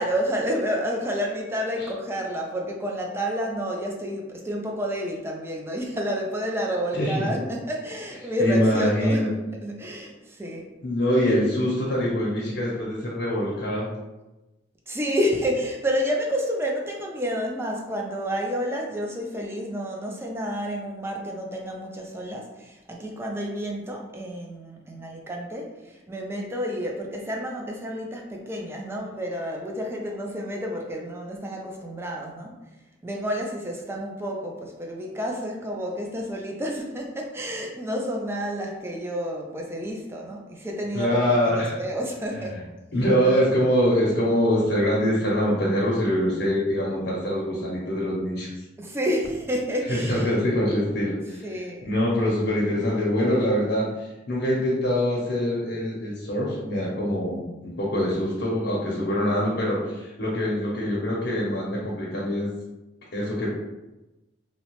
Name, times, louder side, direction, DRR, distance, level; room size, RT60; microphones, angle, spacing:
voice 1, 0.0-9.3 9.6-10.7 14.9-32.6 33.0-42.6 48.8-50.3 51.4-51.9, equal, 15° right, 0 dB, 0.4 m, -30 dB
voice 2, 6.9-7.4 8.4-9.3 10.8-13.9 40.9-41.8 42.5-42.6 42.9-48.5 49.9-51.4 51.8-62.5 63.1-63.5, equal, 75° left, -4 dB, 0.7 m, -24 dB
2.8 x 2.0 x 2.9 m, 1.0 s
head